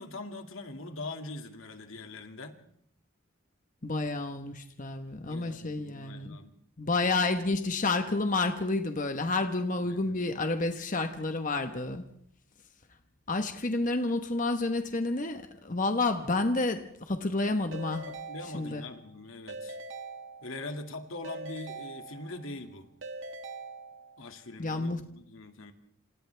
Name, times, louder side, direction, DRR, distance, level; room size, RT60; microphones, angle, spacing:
voice 1, 0.0-2.6 5.3-6.5 9.8-10.2 18.1-19.8 20.4-22.9 24.2-25.7, left 2 dB, 85° left, 5 dB, 2.3 m, -42 dB
voice 2, 3.8-6.4 6.8-12.0 13.3-18.0 18.5-18.8 24.6-25.0, left 2 dB, 40° left, 6 dB, 1.3 m, -30 dB
Keyboard (musical) / Ringtone, 17.7-19.1 19.5-20.8 21.2-22.6 23.0-24.4, right 3 dB, 70° right, 1.6 m, -43 dB
28.0 x 28.0 x 3.5 m, 0.68 s
head